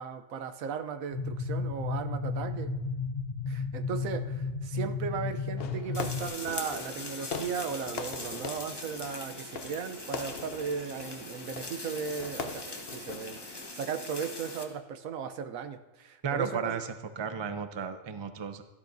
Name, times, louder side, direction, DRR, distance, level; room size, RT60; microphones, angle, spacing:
voice 1, 0.0-2.7 3.5-16.8, right 6 dB, 85° right, 9 dB, 1.2 m, -36 dB
sound 1, 1.1-6.3, left 4 dB, 75° left, 2.1 m, -33 dB
Fireworks, 5.6-13.6, left 5 dB, 55° left, 0.8 m, -42 dB
sound 2, 5.9-14.6, left 2 dB, 20° left, 1.1 m, -42 dB
voice 2, 16.2-18.6, right 6 dB, 40° right, 9 dB, 0.4 m, -34 dB
16.5 x 11.5 x 2.6 m, 1.1 s
omnidirectional pair, 1.4 m